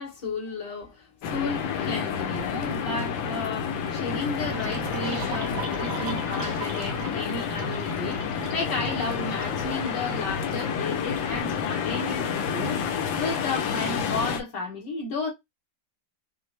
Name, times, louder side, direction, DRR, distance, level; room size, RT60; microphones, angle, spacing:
voice 1, 0.0-15.3, left 3 dB, 65° left, 2.5 m, -33 dB
sound 1, 1.2-14.4, left 6 dB, 90° left, 1.5 m, -29 dB
sound 2, 4.4-11.4, right 5 dB, 60° right, 1.0 m, -40 dB
5.9 x 2.1 x 3.3 m
omnidirectional pair, 2.0 m